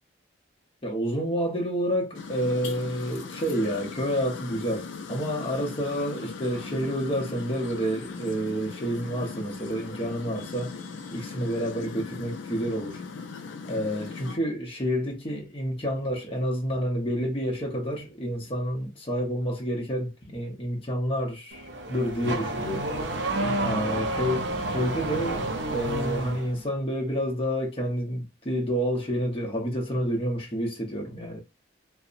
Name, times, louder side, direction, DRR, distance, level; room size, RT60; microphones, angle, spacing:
voice 1, 0.8-10.8 11.1-13.0 13.6-22.9 23.6-31.4, equal, 25° left, 0.7 m, -29 dB
sound 1, 2.1-14.4, left 4 dB, 65° left, 0.4 m, -39 dB
Car / Accelerating revving vroom, 21.5-26.5, right 2 dB, 60° right, 0.5 m, -29 dB
2.7 x 2.0 x 2.4 m
head